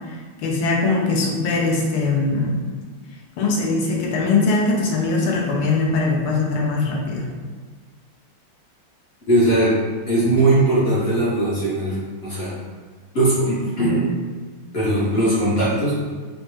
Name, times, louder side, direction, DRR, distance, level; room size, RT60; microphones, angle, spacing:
voice 1, 0.1-2.7 3.4-7.3, left 3 dB, 80° left, -2 dB, 1.6 m, -21 dB
voice 2, 9.3-9.8 10.1-12.6 13.1-14.1 14.7-16.0, right 1 dB, 60° left, -9 dB, 0.6 m, -19 dB
4.8 x 2.0 x 3.1 m, 1.5 s
omnidirectional pair, 2.4 m